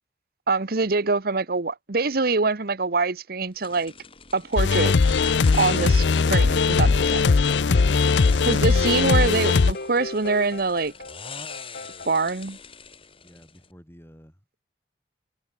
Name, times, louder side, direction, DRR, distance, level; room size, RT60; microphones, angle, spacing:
voice 1, 0.5-3.9 4.3-5.0 5.5-7.3 8.5-10.9 12.0-12.6, right 3 dB, 55° right, 1.1 m, -24 dB
sound 1, 3.6-13.7, left 5 dB, 30° left, 4.4 m, -43 dB
sound 2, 4.6-9.7, left 4 dB, 80° left, 0.5 m, -19 dB
sound 3, 5.8-12.1, left 2 dB, 55° left, 2.1 m, -36 dB
voice 2, 13.2-14.6, equal, 15° left, 7.4 m, -50 dB
head